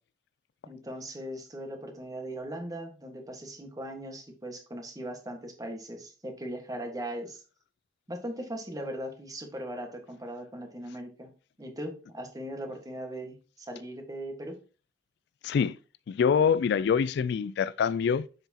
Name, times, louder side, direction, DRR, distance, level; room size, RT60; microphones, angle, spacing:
voice 1, 0.6-7.4 8.1-11.3 11.6-14.6, right 1 dB, 20° right, 1.5 m, -39 dB
voice 2, 15.4-15.8 16.1-18.3, left 6 dB, 65° left, 0.3 m, -25 dB
7.1 x 5.8 x 2.8 m
head